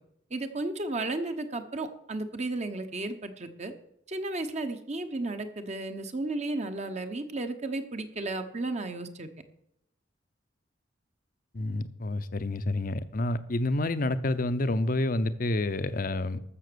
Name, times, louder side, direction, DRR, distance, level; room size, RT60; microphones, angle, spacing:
voice 1, 0.3-3.7 4.1-9.3, right 2 dB, 40° right, 1.0 m, -33 dB
voice 2, 11.5-16.4, left 2 dB, 50° left, 0.8 m, -29 dB
13.0 x 7.1 x 6.9 m
head